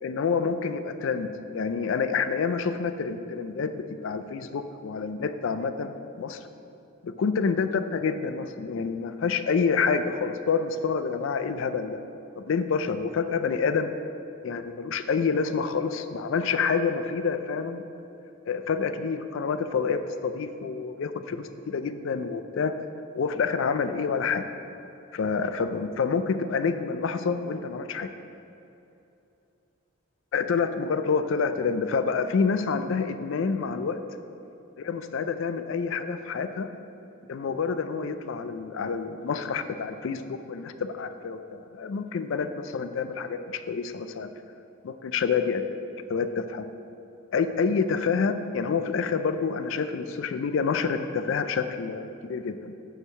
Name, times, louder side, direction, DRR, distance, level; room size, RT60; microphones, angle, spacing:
voice 1, 0.0-6.4 7.0-12.0 12.4-13.9 14.4-17.8 18.5-22.7 23.2-24.4 25.1-28.1 30.3-34.0 34.9-36.7 37.3-44.3 44.8-45.6 46.1-46.6 47.3-52.7, left 5 dB, 60° left, 10 dB, 0.3 m, -28 dB
6.5 x 4.6 x 6.2 m, 2.9 s
head